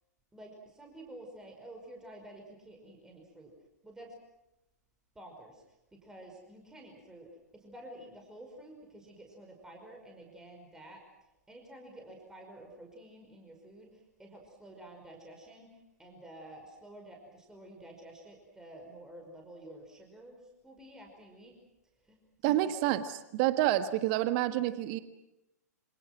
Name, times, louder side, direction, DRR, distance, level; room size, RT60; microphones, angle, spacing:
voice 1, 0.3-3.5 3.8-4.2 5.2-5.8 6.0-21.5 22.0-22.8, right 1 dB, 5° right, 1 dB, 5.4 m, -51 dB
voice 2, 22.4-23.0 23.3-25.0, right 14 dB, 35° right, 12 dB, 1.5 m, -28 dB
27.5 x 27.0 x 6.2 m, 0.91 s
figure-of-eight pair, 110°, 9 cm